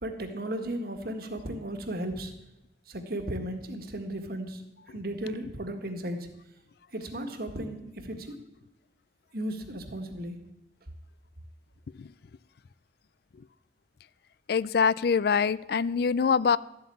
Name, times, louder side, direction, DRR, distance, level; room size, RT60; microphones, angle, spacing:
voice 1, 0.0-2.3 2.9-4.6 4.9-6.3 6.9-8.4 9.3-10.4, right 1 dB, 55° right, 6 dB, 1.7 m, -35 dB
voice 2, 14.5-16.6, left 6 dB, 60° left, 19 dB, 0.4 m, -24 dB
13.0 x 8.1 x 8.5 m, 0.92 s
head